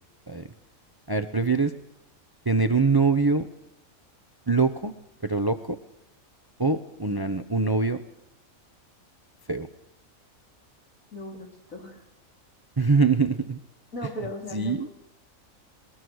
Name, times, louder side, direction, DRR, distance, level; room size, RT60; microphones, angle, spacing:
voice 1, 1.1-1.7 2.4-3.5 4.5-4.9 5.2-5.8 6.6-8.0 9.5-9.7 12.8-13.6 14.5-14.9, right 4 dB, 20° right, 9 dB, 0.7 m, -23 dB
voice 2, 11.1-12.0 13.9-15.0, left 1 dB, 70° left, 0 dB, 4.7 m, -37 dB
22.5 x 21.0 x 6.4 m, 0.82 s
omnidirectional pair, 1.5 m